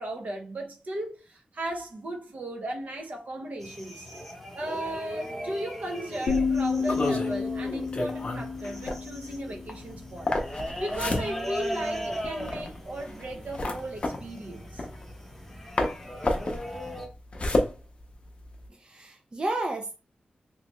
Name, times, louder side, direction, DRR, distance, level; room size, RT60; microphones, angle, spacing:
voice 1, 0.0-4.3 4.5-10.3 10.8-14.9, right 1 dB, 55° right, 0.9 m, -36 dB
sound 1, 3.6-17.1, equal, 5° left, 0.8 m, -39 dB
sound 2, 6.3-10.1, left 5 dB, 80° left, 0.4 m, -30 dB
sound 3, 6.8-15.5 15.8-18.7, left 2 dB, 40° left, 0.6 m, -31 dB
voice 2, 18.7-19.9, right 2 dB, 30° right, 0.5 m, -32 dB
3.3 x 2.9 x 3.0 m
wide cardioid pair, 140°, 3 cm